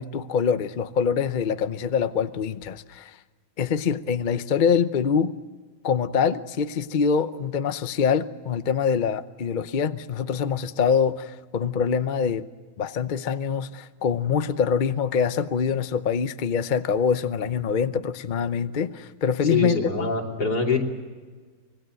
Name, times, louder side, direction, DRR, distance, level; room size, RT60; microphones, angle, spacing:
voice 1, 0.0-3.2 3.6-5.3 5.8-12.5 12.8-20.1, left 6 dB, 45° left, 0.6 m, -24 dB
voice 2, 19.5-20.8, left 4 dB, 80° left, 3.7 m, -24 dB
25.0 x 20.5 x 7.7 m
omnidirectional pair, 1.7 m